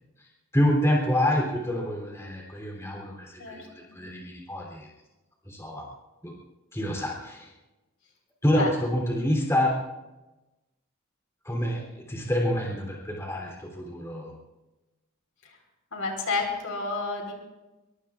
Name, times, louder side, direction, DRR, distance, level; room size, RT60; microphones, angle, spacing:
voice 1, 0.5-4.9 5.4-5.9 6.2-6.3 6.7-7.5 8.4-9.8 11.4-14.3, equal, 10° left, -1 dB, 3.3 m, -27 dB
voice 2, 3.4-3.9 8.5-8.7 15.9-17.3, left 3 dB, 70° left, 2 dB, 4.3 m, -30 dB
23.5 x 23.0 x 2.5 m, 1.1 s
head